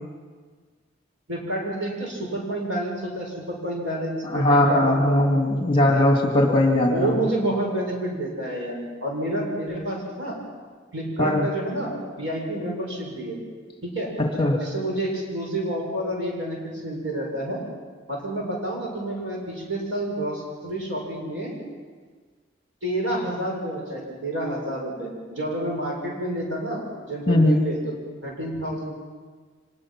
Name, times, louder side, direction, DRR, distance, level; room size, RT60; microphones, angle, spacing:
voice 1, 1.3-5.2 5.5-5.6 5.9-6.0 6.8-10.4 10.9-13.4 13.8-14.1 14.5-16.6 16.8-17.6 18.1-21.5 22.8-26.8 27.1-27.8 28.2-28.9, right 1 dB, 85° right, -1 dB, 7.2 m, -29 dB
voice 2, 4.3-7.2 11.2-11.5 14.2-14.6 27.3-27.6, left 1 dB, 25° left, 1 dB, 2.2 m, -19 dB
25.0 x 20.0 x 6.1 m, 1.5 s
head